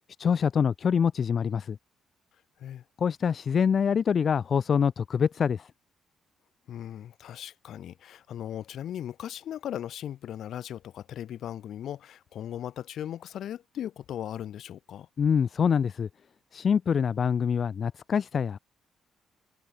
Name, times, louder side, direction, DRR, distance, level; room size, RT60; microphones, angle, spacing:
voice 1, 0.2-1.8 3.0-5.7 15.2-16.1 16.5-18.6, left 7 dB, 50° left, 0.7 m, -25 dB
voice 2, 6.7-15.1, left 10 dB, 70° left, 2.4 m, -38 dB
cardioid pair, 90°, 0 cm